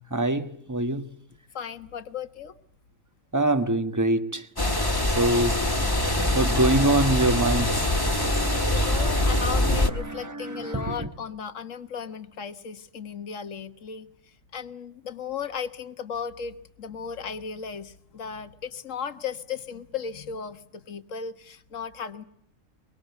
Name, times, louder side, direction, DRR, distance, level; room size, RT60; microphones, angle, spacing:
voice 1, 0.1-1.1 3.3-4.5 5.2-11.1, right 2 dB, 15° right, 1.3 m, -26 dB
voice 2, 1.5-2.5 8.5-22.2, left 7 dB, 65° left, 1.7 m, -36 dB
sound 1, 4.6-9.9, left 1 dB, 15° left, 1.6 m, -24 dB
24.0 x 23.0 x 8.2 m
omnidirectional pair, 1.4 m